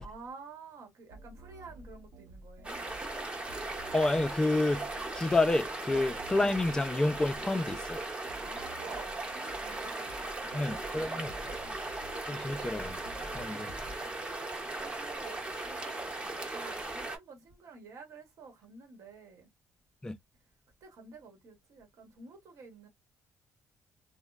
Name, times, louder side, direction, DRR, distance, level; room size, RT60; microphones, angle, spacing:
voice 1, 0.0-2.9 5.9-6.2 8.3-10.8 11.1-11.3 11.6-11.8 12.3-12.4 13.3-13.6 14.8-19.5 20.8-22.9, right 4 dB, 60° right, 1.0 m, -50 dB
sound 1, 1.1-14.0, right 1 dB, 80° right, 0.7 m, -50 dB
sound 2, 2.6-17.2, right 2 dB, 20° right, 0.7 m, -38 dB
voice 2, 3.9-4.9 5.1-8.0 10.5-11.3 12.3-13.0 13.3-13.7 20.0-20.1, left 2 dB, 10° left, 0.3 m, -29 dB
2.9 x 2.0 x 2.3 m
cardioid pair, 115°, 6 cm